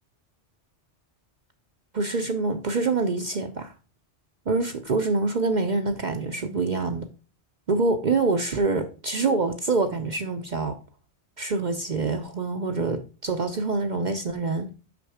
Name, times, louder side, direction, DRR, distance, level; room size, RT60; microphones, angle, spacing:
voice 1, 1.9-3.7 4.5-7.1 7.7-10.8 11.4-14.7, right 3 dB, 45° right, 0.7 m, -26 dB
6.1 x 5.9 x 4.8 m
omnidirectional pair, 1.2 m